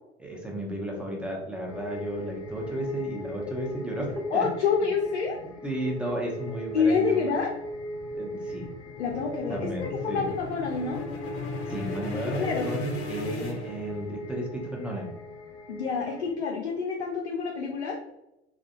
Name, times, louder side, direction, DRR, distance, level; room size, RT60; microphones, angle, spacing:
voice 1, 0.2-4.5 5.4-7.2 8.1-8.7 9.5-10.3 11.7-15.1, right 1 dB, 5° right, -2 dB, 0.7 m, -33 dB
sound 1, 1.7-16.3, equal, 15° left, 0.3 m, -40 dB
voice 2, 4.3-5.4 6.7-7.5 9.0-11.0 12.3-12.7 15.7-18.0, left 5 dB, 70° left, 0 dB, 0.5 m, -27 dB
sound 2, 7.4-14.3, left 3 dB, 40° left, 0.7 m, -37 dB
3.6 x 2.3 x 2.3 m, 0.90 s
figure-of-eight pair, 75°, 34 cm